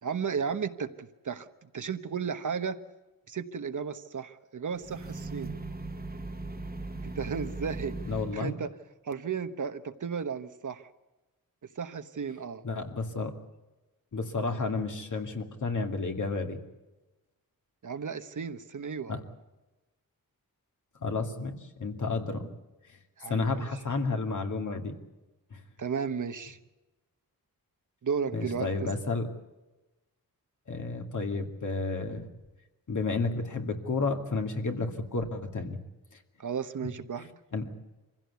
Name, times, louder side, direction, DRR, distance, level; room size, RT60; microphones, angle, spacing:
voice 1, 0.0-1.5 1.7-2.8 3.3-5.6 7.0-8.0 8.3-8.7 9.0-10.9 11.8-12.6 17.8-19.1 23.2-23.7 25.8-26.6 28.0-28.9 36.4-37.3, right 6 dB, 55° right, 9 dB, 1.2 m, -34 dB
sound 1, 4.7-8.4, right 2 dB, 25° right, 1.6 m, -38 dB
voice 2, 8.0-8.6 12.6-13.3 14.1-16.6 19.1-19.2 21.0-22.5 22.9-23.0 23.3-25.0 25.5-25.6 28.3-29.3 30.7-32.3 32.9-35.8 37.5-37.6, left 3 dB, 55° left, 4 dB, 2.5 m, -31 dB
25.5 x 16.0 x 8.3 m, 1.1 s
wide cardioid pair, 135°, 36 cm